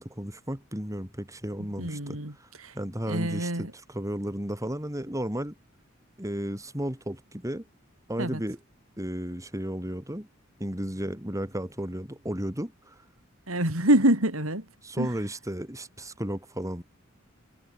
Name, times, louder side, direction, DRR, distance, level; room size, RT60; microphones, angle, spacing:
voice 1, 0.0-2.5 2.7-5.5 6.2-7.6 8.1-8.6 9.0-10.3 10.6-13.0 14.8-16.8, equal, 15° right, 4.6 m, -34 dB
voice 2, 1.6-2.8 3.1-3.7 8.2-8.4 13.5-14.7 15.0-15.1, right 1 dB, 75° right, 7.0 m, -26 dB
head